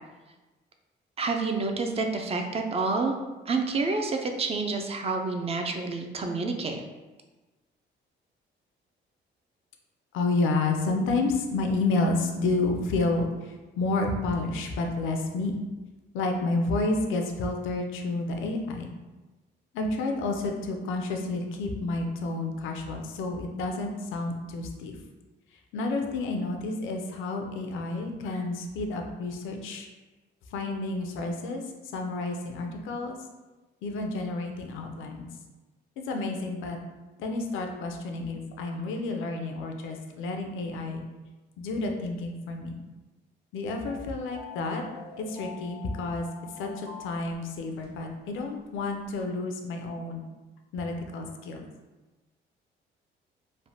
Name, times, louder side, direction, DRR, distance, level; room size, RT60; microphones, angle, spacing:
voice 1, 1.2-3.1 3.5-6.8, right 3 dB, 30° right, 3 dB, 0.4 m, -28 dB
voice 2, 10.1-15.6 16.1-18.9 19.7-25.0 25.7-29.9 30.5-31.6 31.9-33.2 33.8-35.3 36.0-36.8 37.2-41.0 41.6-42.8 43.5-44.8 45.2-46.3 46.6-50.2 50.7-51.7, left 2 dB, 85° left, 3 dB, 0.4 m, -30 dB
sound 1, 43.8-48.0 48.3-48.4 48.8-49.1, left 5 dB, 50° right, 1.1 m, -45 dB
3.2 x 2.1 x 2.7 m, 1.2 s
cardioid pair, 90°, 20 cm